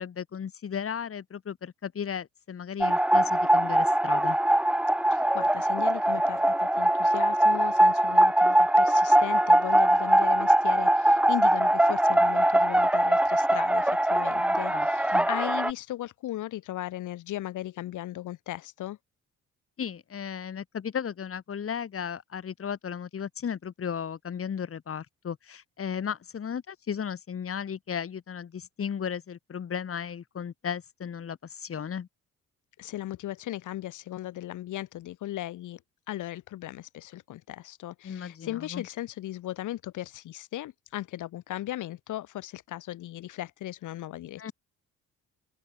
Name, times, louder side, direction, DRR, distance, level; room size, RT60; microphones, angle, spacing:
voice 1, 0.0-4.4 14.4-14.9 15.1-15.3 19.8-32.1 38.0-38.8 44.4-44.5, left 7 dB, 50° left, 3.5 m, -35 dB
sound 1, 2.8-15.7, right 1 dB, 5° right, 0.6 m, -22 dB
voice 2, 5.1-19.0 32.8-35.8 36.1-44.5, left 14 dB, 85° left, 4.2 m, -37 dB
open air
cardioid pair, 90°, 30 cm